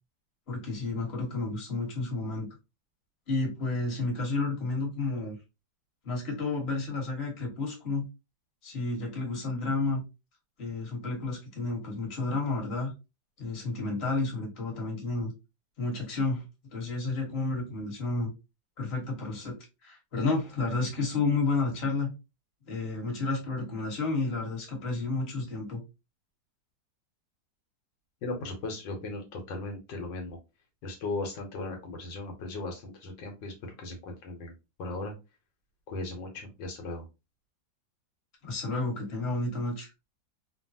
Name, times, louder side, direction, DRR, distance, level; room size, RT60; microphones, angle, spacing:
voice 1, 0.5-2.5 3.3-5.4 6.0-8.1 8.6-10.0 10.6-12.9 13.4-15.3 15.8-16.4 16.7-18.3 18.8-19.5 19.8-22.1 22.7-25.8 38.4-39.9, left 3 dB, 35° left, -1 dB, 1.4 m, -31 dB
voice 2, 28.2-30.4 30.8-34.5 34.8-35.1 35.9-37.0, left 2 dB, 75° left, 2 dB, 1.4 m, -37 dB
3.2 x 2.2 x 2.6 m, 0.26 s
omnidirectional pair, 2.0 m